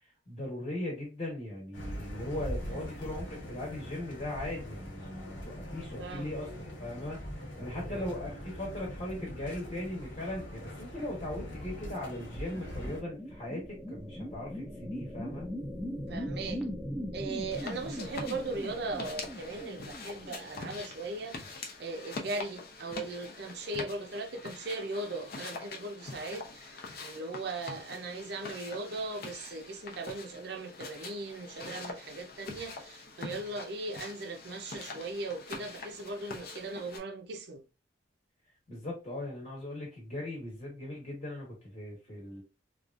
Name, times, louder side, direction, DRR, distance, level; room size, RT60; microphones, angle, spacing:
voice 1, 0.3-6.5 6.8-7.2 7.6-15.5 38.7-42.4, left 1 dB, 35° left, 1.1 m, -39 dB
sound 1, 1.7-13.0, equal, 75° left, 1.2 m, -42 dB
voice 2, 6.0-6.4 7.9-8.2 16.1-16.6 17.1-37.6, right 2 dB, 60° right, 0.6 m, -38 dB
sound 2, 11.5-21.2, equal, ahead, 0.5 m, -40 dB
sound 3, 17.5-37.0, left 3 dB, 55° left, 0.6 m, -44 dB
2.9 x 2.4 x 2.4 m
head